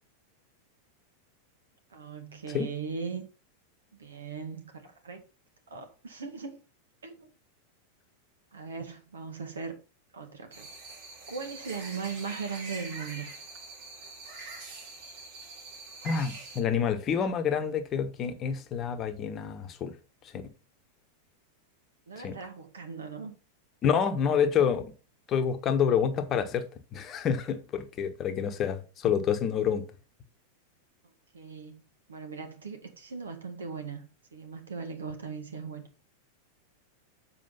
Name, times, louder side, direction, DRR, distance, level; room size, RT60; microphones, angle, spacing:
voice 1, 1.9-3.2 4.0-5.2 5.7-6.6 7.0-7.3 8.5-9.7 10.1-10.7 11.3-13.3 22.1-23.3 31.3-31.8 32.1-35.8, right 5 dB, 70° right, 1.9 m, -39 dB
sound 1, 10.5-16.6, right 3 dB, 50° right, 3.5 m, -44 dB
voice 2, 16.0-19.9 22.2-22.4 23.8-24.9 25.3-26.6 26.9-29.8, left 7 dB, 30° left, 1.1 m, -28 dB
7.5 x 5.0 x 5.6 m
figure-of-eight pair, 90°, 0 cm